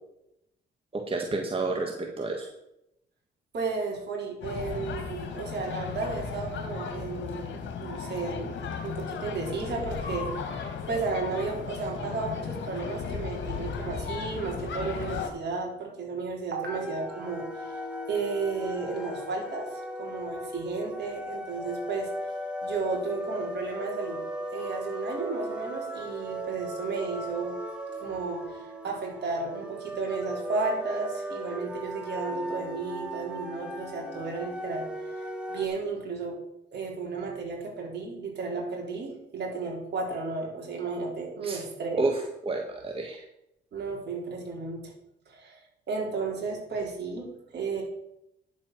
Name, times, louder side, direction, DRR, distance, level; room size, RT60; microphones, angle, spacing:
voice 1, 0.9-2.5 41.4-41.6 42.0-43.2, right 3 dB, 30° right, 2 dB, 1.6 m, -30 dB
voice 2, 3.5-8.6 8.8-10.3 10.9-17.8 18.1-22.1 22.6-24.2 24.5-27.6 28.0-36.4 36.7-42.1 43.7-44.9 45.3-47.8, right 4 dB, 60° right, -1 dB, 4.2 m, -33 dB
sound 1, 4.4-15.3, left 6 dB, 70° left, 2.0 m, -35 dB
sound 2, 16.7-35.7, equal, 5° right, 2.4 m, -37 dB
10.5 x 7.5 x 6.2 m, 0.85 s
cardioid pair, 90°, 20 cm